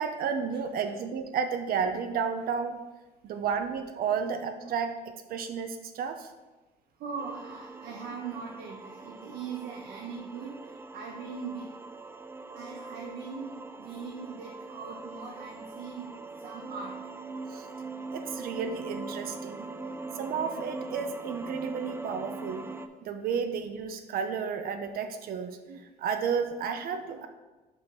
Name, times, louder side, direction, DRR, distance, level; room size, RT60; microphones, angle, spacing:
voice 1, 0.0-2.8 3.2-6.3 17.5-17.7 18.1-19.7 20.1-22.7 23.0-27.3, right 6 dB, 60° right, 7 dB, 0.6 m, -32 dB
voice 2, 7.0-11.7 12.5-17.0, right 5 dB, 80° right, -2 dB, 1.1 m, -41 dB
sound 1, 7.2-22.9, right 3 dB, 15° right, 0.4 m, -42 dB
5.5 x 4.5 x 5.4 m, 1.2 s
cardioid pair, 110°, 17 cm